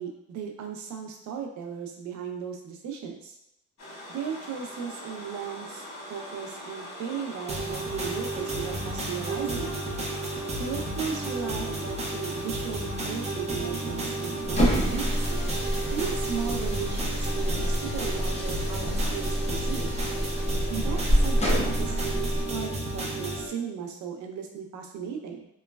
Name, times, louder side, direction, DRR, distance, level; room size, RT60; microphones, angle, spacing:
voice 1, 0.0-3.4 4.1-9.7 10.5-15.3 15.9-19.9 20.7-25.5, right 7 dB, 70° right, 2 dB, 0.5 m, -36 dB
sound 1, 3.8-21.8, equal, 60° left, 1.2 m, -45 dB
sound 2, 7.5-23.5, right 2 dB, 20° right, 0.5 m, -32 dB
sound 3, 14.4-22.5, equal, 20° left, 0.7 m, -27 dB
3.0 x 2.2 x 2.2 m, 0.84 s
cardioid pair, 90°, 30 cm